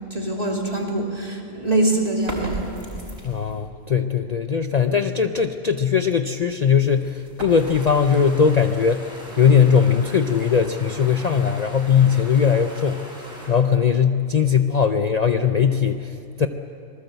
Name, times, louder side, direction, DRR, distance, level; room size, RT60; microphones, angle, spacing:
voice 1, 0.1-2.8, right 2 dB, 35° right, -1 dB, 3.4 m, -24 dB
sound 1, 2.1-3.7 6.4-9.4, right 1 dB, 60° right, 4.6 m, -37 dB
voice 2, 3.2-13.0 13.5-16.5, left 7 dB, 40° left, 7 dB, 0.7 m, -19 dB
sound 2, 7.5-13.5, equal, 5° right, 7.6 m, -40 dB
26.5 x 19.5 x 8.1 m, 2.5 s
omnidirectional pair, 1.2 m